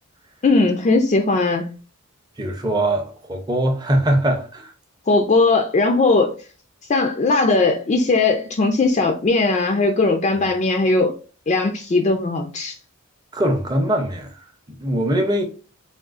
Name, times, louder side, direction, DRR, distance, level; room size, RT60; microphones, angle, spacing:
voice 1, 0.4-1.8 5.1-6.4 6.9-11.2 11.5-12.8, left 3 dB, 35° left, 0.3 m, -18 dB
voice 2, 2.4-4.7 13.3-14.3 14.8-15.4, right 1 dB, 20° right, 0.5 m, -21 dB
3.6 x 2.3 x 2.4 m
head